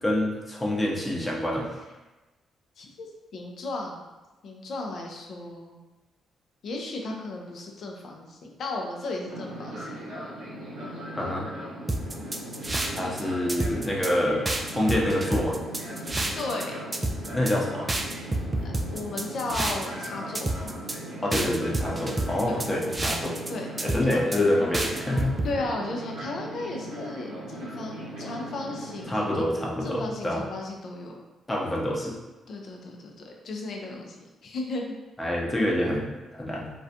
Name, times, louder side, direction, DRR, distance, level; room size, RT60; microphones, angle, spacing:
voice 1, 0.0-1.7 11.2-11.5 12.9-15.6 17.3-17.9 21.2-23.4 23.8-25.4 29.1-30.4 31.5-32.2 35.2-36.7, left 1 dB, 20° left, -3 dB, 0.7 m, -27 dB
voice 2, 2.8-4.0 4.4-5.8 6.6-10.0 10.8-11.4 16.4-16.8 18.9-20.5 22.5-22.6 23.5-23.7 24.1-24.2 25.4-29.5 29.8-31.3 32.5-35.0, left 2 dB, 60° left, 1 dB, 0.4 m, -35 dB
Fixed-wing aircraft airplane, 9.3-29.0, right 1 dB, 80° right, 0.6 m, -38 dB
sound 1, 11.9-13.2 13.5-14.1 14.4-16.6 16.9-17.5 17.9-20.1 20.3-21.0 21.3-23.5 23.8-24.4 24.7-25.5, right 2 dB, 25° right, 0.3 m, -29 dB
2.4 x 2.2 x 2.7 m, 1.1 s
hypercardioid pair, 50°, 0 cm